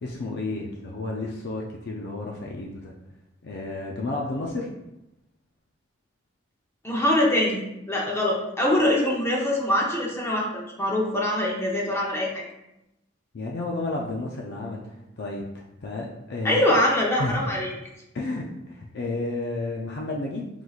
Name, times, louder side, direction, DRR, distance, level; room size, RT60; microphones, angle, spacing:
voice 1, 0.0-2.9 3.4-4.7 13.3-14.8 15.2-16.8 17.2-17.4 18.1-18.4 18.7-20.5, left 2 dB, 60° left, -1 dB, 0.5 m, -31 dB
voice 2, 6.8-12.4 16.4-17.7, left 1 dB, 15° left, -3 dB, 0.7 m, -23 dB
4.5 x 3.9 x 2.4 m, 0.90 s
head